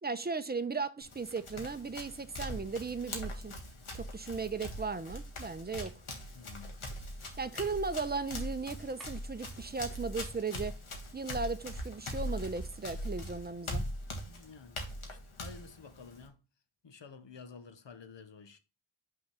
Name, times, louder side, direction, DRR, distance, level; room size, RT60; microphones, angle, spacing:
voice 1, 0.0-3.6 3.9-5.9 7.4-10.8 11.1-13.8, right 4 dB, 20° right, 0.6 m, -36 dB
Run, 1.0-16.3, left 1 dB, 85° left, 1.7 m, -41 dB
sound 1, 5.8-6.1 9.0-9.4, right 1 dB, ahead, 2.0 m, -56 dB
voice 2, 6.3-6.8 14.2-16.4 16.8-18.6, left 5 dB, 60° left, 1.0 m, -51 dB
5.7 x 3.9 x 5.6 m
wide cardioid pair, 70°, 48 cm